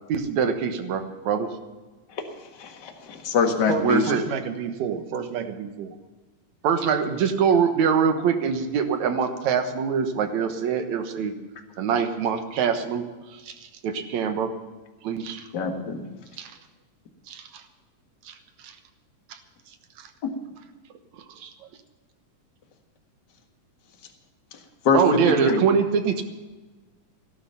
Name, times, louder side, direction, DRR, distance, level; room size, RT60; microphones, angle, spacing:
voice 1, 0.1-1.5 3.8-4.2 6.6-11.3 11.8-13.1 13.5-13.6 13.8-14.5 15.0-15.5 16.4-16.5 17.3-17.5 18.3-18.4 18.6-18.7 20.0-20.1 21.4-21.5 24.9-26.2, right 6 dB, 70° right, 8 dB, 2.4 m, -23 dB
voice 2, 2.6-4.0 15.5-16.0 24.9-25.0 25.3-25.6, left 5 dB, 40° left, 4 dB, 1.9 m, -23 dB
voice 3, 3.7-6.0, right 7 dB, 85° right, 8 dB, 2.8 m, -31 dB
16.5 x 12.5 x 5.7 m, 1.3 s
omnidirectional pair, 3.7 m